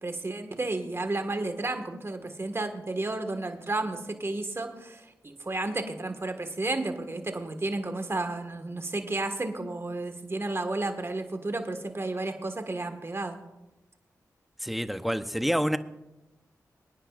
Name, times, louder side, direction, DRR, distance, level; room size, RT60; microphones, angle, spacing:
voice 1, 0.0-13.4, right 2 dB, 40° right, 6 dB, 1.7 m, -32 dB
voice 2, 14.6-15.8, equal, ahead, 10 dB, 0.8 m, -27 dB
24.5 x 9.8 x 2.5 m, 0.96 s
cardioid pair, 45°, 7 cm